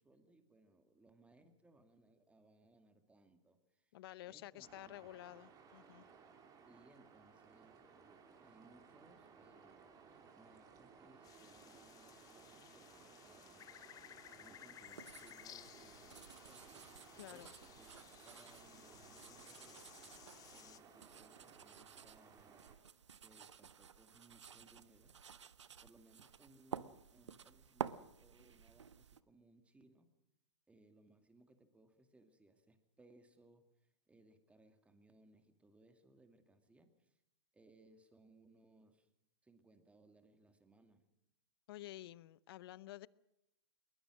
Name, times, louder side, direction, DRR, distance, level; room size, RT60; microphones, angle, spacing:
voice 1, 0.0-4.0 4.2-5.2 6.6-19.9 20.5-22.7 23.2-25.6 25.8-30.1 30.7-37.2 37.5-39.1 39.4-41.0, right 2 dB, 10° right, 8 dB, 2.3 m, -67 dB
voice 2, 3.9-6.0 17.2-17.5 41.7-43.1, left 15 dB, 55° left, 20 dB, 0.7 m, -51 dB
sound 1, 4.6-22.8, right 6 dB, 25° right, 3.2 m, -61 dB
sound 2, 11.2-20.8, left 12 dB, 25° left, 0.7 m, -59 dB
sound 3, 14.9-29.2, right 7 dB, 85° right, 0.9 m, -52 dB
22.0 x 20.5 x 6.3 m, 0.84 s
hypercardioid pair, 120°, 15 cm